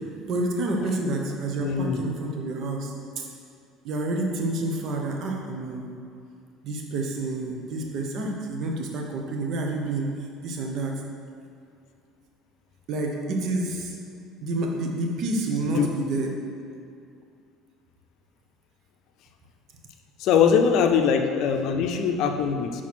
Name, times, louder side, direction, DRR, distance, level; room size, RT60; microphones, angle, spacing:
voice 1, 0.3-3.3 3.8-5.9 6.6-10.1 10.4-10.9 12.9-14.0 14.4-16.3, right 2 dB, 60° right, 1 dB, 1.0 m, -29 dB
voice 2, 1.6-2.0 15.8-15.9 20.2-22.8, left 7 dB, 65° left, 5 dB, 0.5 m, -22 dB
6.1 x 4.5 x 4.3 m, 2.4 s
supercardioid pair, 90°, 0 cm